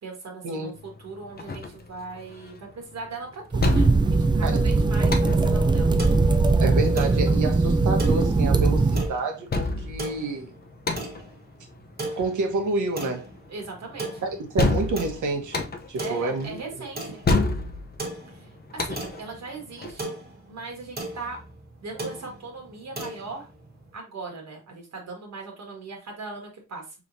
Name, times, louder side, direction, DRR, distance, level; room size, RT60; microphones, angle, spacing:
voice 1, 0.0-0.7 1.0-5.9 13.5-14.1 16.0-17.2 18.3-20.1 20.5-21.5 21.8-23.5 23.9-26.9, right 3 dB, 65° right, 1.4 m, -39 dB
sound 1, 0.7-20.0, left 3 dB, 30° left, 0.6 m, -31 dB
sound 2, 3.5-9.1, right 3 dB, 15° right, 0.3 m, -20 dB
sound 3, 6.0-23.9, right 2 dB, 30° right, 1.4 m, -39 dB
voice 2, 6.6-10.5 12.2-13.3 14.2-14.3 14.5-15.6 15.9-16.6, right 3 dB, 85° right, 1.1 m, -28 dB
4.9 x 3.0 x 2.6 m
wide cardioid pair, 115°, 30 cm